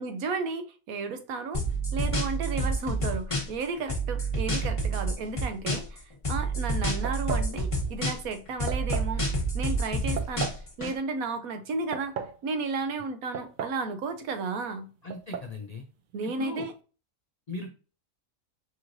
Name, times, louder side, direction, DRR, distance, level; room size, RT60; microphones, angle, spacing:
voice 1, 0.0-1.6 1.9-9.2 9.5-10.5 10.8-12.2 12.4-14.9 16.1-16.7, right 4 dB, 90° right, 1.2 m, -33 dB
sound 1, 1.5-3.6 3.9-6.0 6.2-8.3 8.6-10.9, right 2 dB, 25° left, 1.0 m, -28 dB
sound 2, 7.0-7.5 8.7-9.1 10.2-10.6 11.7-12.4 13.3-13.9 14.1-14.2 15.1-15.5, right 7 dB, 70° right, 0.4 m, -35 dB
voice 2, 15.0-15.8 16.2-16.7 17.5-17.7, left 3 dB, 85° left, 0.3 m, -38 dB
5.4 x 3.1 x 2.5 m
omnidirectional pair, 1.4 m